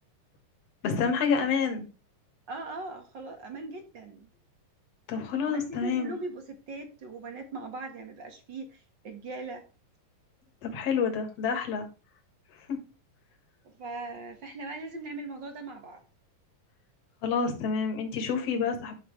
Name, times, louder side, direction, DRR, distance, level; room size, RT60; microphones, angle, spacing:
voice 1, 0.8-1.9 5.1-6.2 10.6-11.9 12.7-12.8 17.2-18.9, left 5 dB, 50° left, 4 dB, 2.6 m, -28 dB
voice 2, 2.5-4.3 5.5-9.6 13.6-16.0, right 2 dB, 40° right, 5 dB, 1.8 m, -40 dB
11.0 x 6.7 x 3.3 m, 0.33 s
omnidirectional pair, 3.9 m